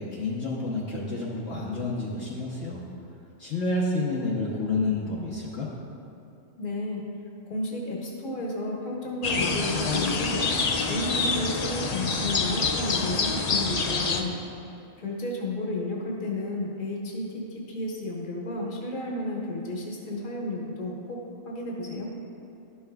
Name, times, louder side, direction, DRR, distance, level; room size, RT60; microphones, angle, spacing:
voice 1, 0.0-2.8 3.4-5.7, left 2 dB, 60° left, -6 dB, 1.0 m, -29 dB
voice 2, 6.6-7.0 7.5-14.4 15.0-22.1, left 1 dB, 40° left, -2 dB, 1.2 m, -32 dB
sound 1, 9.2-14.2, left 4 dB, 85° left, 0.3 m, -26 dB
12.0 x 5.7 x 2.3 m, 2.7 s
omnidirectional pair, 1.3 m